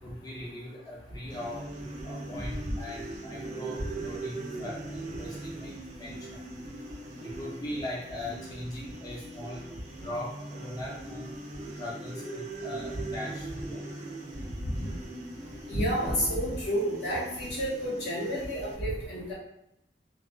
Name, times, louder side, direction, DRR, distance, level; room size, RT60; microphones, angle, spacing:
voice 1, 0.0-1.7 2.0-6.5 7.2-9.7 10.0-11.4 11.8-13.9, left 1 dB, 20° left, -5 dB, 0.4 m, -40 dB
sound 1, 1.3-18.7, right 2 dB, 40° right, 0.4 m, -41 dB
voice 2, 15.7-19.3, equal, 80° left, -7 dB, 1.1 m, -30 dB
2.4 x 2.3 x 2.2 m, 0.81 s
head